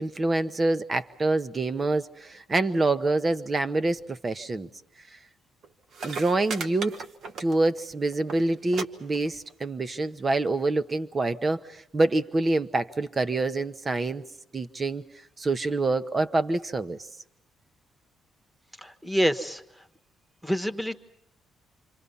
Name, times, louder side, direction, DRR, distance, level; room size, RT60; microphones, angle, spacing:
voice 1, 0.0-4.7 6.0-7.0 7.4-14.2 14.5-15.1 15.4-17.0, right 2 dB, 25° right, 12 dB, 1.0 m, -26 dB
sound 1, 5.6-5.7 5.9-7.9 8.1-8.4 8.7-8.9 9.1-9.6 10.5-10.6, right 4 dB, 60° right, 1.5 m, -36 dB
voice 2, 18.8-19.6 20.4-21.0, equal, 5° right, 11 dB, 1.4 m, -26 dB
28.0 x 25.5 x 5.6 m, 0.77 s
cardioid pair, 115°, 0 cm